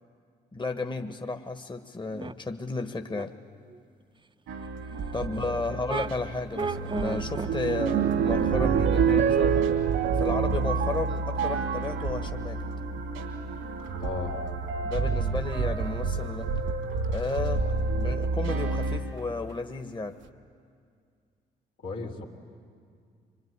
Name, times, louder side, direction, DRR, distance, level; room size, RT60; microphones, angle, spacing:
voice 1, 0.5-3.3 5.1-9.7 10.2-12.6 14.8-16.5 17.1-17.6 17.9-20.2, left 3 dB, 25° left, 6 dB, 1.4 m, -33 dB
sound 1, 2.1-2.3 3.1-3.2 3.7-3.8 5.1-5.2 5.9-6.1 6.5-7.5, right 4 dB, 25° right, 0.8 m, -33 dB
sound 2, 4.5-19.0, right 3 dB, 85° right, 2.6 m, -31 dB
voice 2, 5.2-5.8 14.0-14.4 21.8-22.3, left 3 dB, 75° left, -2 dB, 3.2 m, -36 dB
sound 3, 6.6-12.2 13.0-13.4 14.6-14.7 15.4-15.8 17.9-18.5 19.2-19.3 19.5-19.6, right 9 dB, 70° right, 1.1 m, -27 dB
25.0 x 21.5 x 9.7 m, 2.2 s
hypercardioid pair, 50°, 20 cm